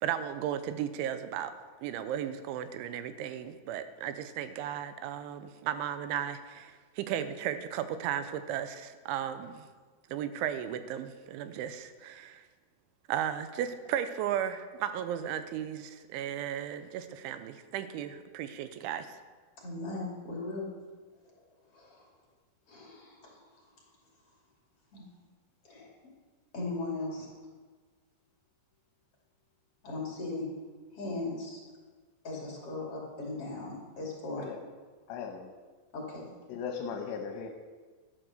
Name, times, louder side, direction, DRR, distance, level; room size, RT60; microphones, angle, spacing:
voice 1, 0.0-1.5 1.8-9.7 10.1-12.4 13.1-19.2, right 10 dB, 90° right, 11 dB, 3.2 m, -35 dB
voice 2, 19.6-20.7 21.7-22.0 22.7-23.4 24.9-25.0 25.6-25.9 26.5-27.3 29.8-30.5 30.9-31.6 32.2-34.4 35.9-36.3, left 2 dB, 35° left, -2 dB, 3.1 m, -38 dB
voice 3, 35.1-35.5 36.5-37.5, left 6 dB, 75° left, 3 dB, 3.1 m, -37 dB
12.0 x 11.0 x 6.6 m, 1.4 s
omnidirectional pair, 5.4 m